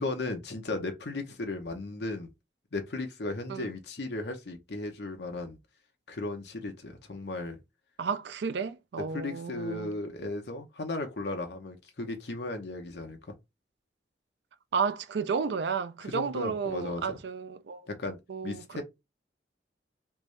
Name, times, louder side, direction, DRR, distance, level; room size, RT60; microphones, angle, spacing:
voice 1, 0.0-2.3 2.7-5.6 6.1-7.6 9.1-13.2 16.0-17.2 17.9-18.2 18.4-18.8, left 2 dB, 65° left, 0.8 m, -36 dB
voice 2, 8.0-9.9 14.7-17.8 18.3-18.8, right 5 dB, 70° right, 0.4 m, -32 dB
3.3 x 2.6 x 3.2 m
head